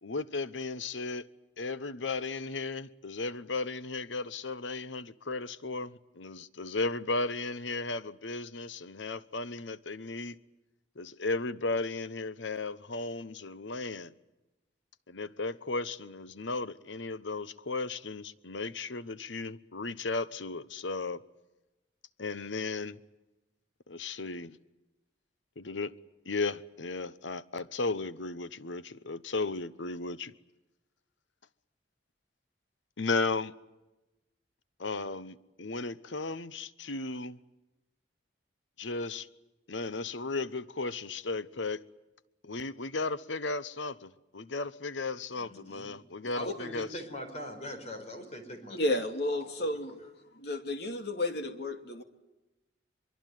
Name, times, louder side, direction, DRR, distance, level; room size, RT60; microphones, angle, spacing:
voice 1, 0.0-1.3 1.6-10.4 11.0-14.1 15.1-21.2 22.2-23.0 23.9-24.6 25.6-25.9 26.2-30.3 33.0-33.5 34.8-37.4 38.8-39.3 39.7-41.8 42.4-46.9, left 3 dB, 80° left, 1.0 m, -35 dB
voice 2, 45.4-45.9 46.3-49.0 49.4-50.1, equal, 35° left, 4.7 m, -42 dB
voice 3, 48.7-50.0 50.3-52.0, left 1 dB, 60° left, 2.6 m, -32 dB
24.0 x 23.5 x 9.3 m
head